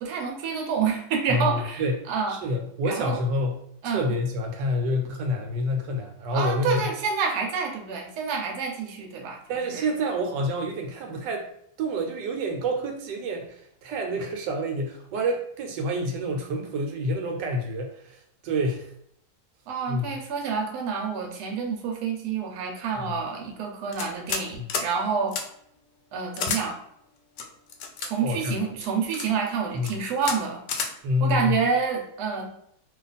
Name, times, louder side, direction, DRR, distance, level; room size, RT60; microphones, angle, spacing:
voice 1, 0.0-2.4 2.8-3.2 3.8-4.1 6.3-9.9 19.7-25.4 26.1-26.8 28.0-30.9 31.2-32.5, right 5 dB, 70° right, 1 dB, 1.2 m, -28 dB
voice 2, 1.3-6.9 9.5-11.4 11.8-18.9 19.9-20.1 28.2-28.5 29.7-29.9 31.0-31.6, equal, 85° right, 3 dB, 1.3 m, -28 dB
sound 1, 23.9-24.4 24.7-24.9 25.3-25.4 26.4-26.6 27.4-28.1 28.8-29.3 29.8-29.9 30.2-30.4 30.7-30.9, left 5 dB, 75° left, 1.1 m, -30 dB
2.8 x 2.4 x 4.0 m, 0.70 s
omnidirectional pair, 1.9 m